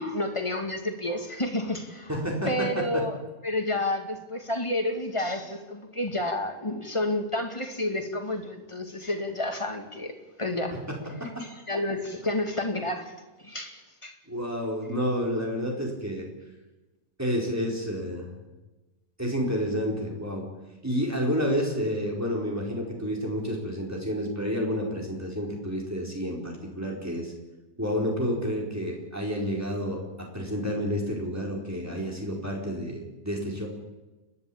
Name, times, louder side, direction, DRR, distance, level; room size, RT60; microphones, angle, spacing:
voice 1, 0.0-2.2 2.5-3.2 3.4-10.9 11.2-13.1 13.4-14.2, left 1 dB, 20° left, 4 dB, 2.4 m, -30 dB
voice 2, 2.1-3.0 10.7-11.4 14.3-16.3 17.2-18.3 19.2-20.5 20.8-27.3 27.8-33.7, equal, 10° right, -1 dB, 4.7 m, -30 dB
29.5 x 11.5 x 8.8 m, 1.1 s
omnidirectional pair, 1.5 m